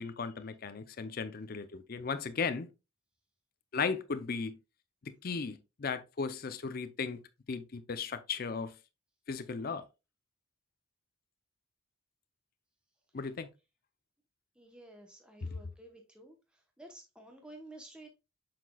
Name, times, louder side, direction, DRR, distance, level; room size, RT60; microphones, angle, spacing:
voice 1, 0.0-2.7 3.7-4.6 5.0-7.2 7.5-8.7 9.3-9.8 13.1-13.5 15.4-15.6, left 5 dB, 45° left, 0.5 m, -36 dB
voice 2, 14.6-16.4 16.8-18.1, right 1 dB, 5° right, 0.9 m, -52 dB
7.3 x 5.9 x 2.3 m
head